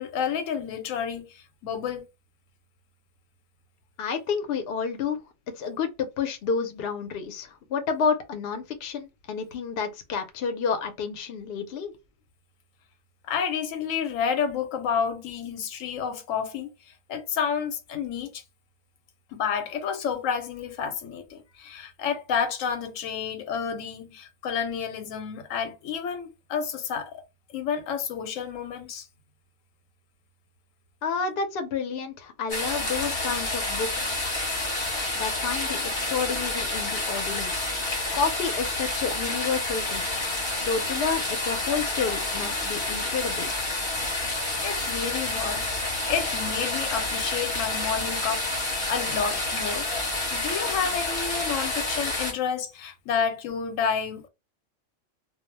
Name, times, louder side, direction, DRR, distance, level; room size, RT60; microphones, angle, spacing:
voice 1, 0.0-2.0 13.2-16.7 17.1-18.4 19.3-27.2 27.5-29.1 44.6-49.9 50.3-54.3, left 7 dB, 85° left, 1.0 m, -30 dB
voice 2, 4.0-5.2 5.5-11.9 31.0-34.1 35.1-37.6 38.1-40.1 40.5-43.5, left 5 dB, 60° left, 0.7 m, -30 dB
sound 1, 32.5-52.3, left 2 dB, 25° left, 0.8 m, -29 dB
2.3 x 2.0 x 3.1 m
omnidirectional pair, 1.3 m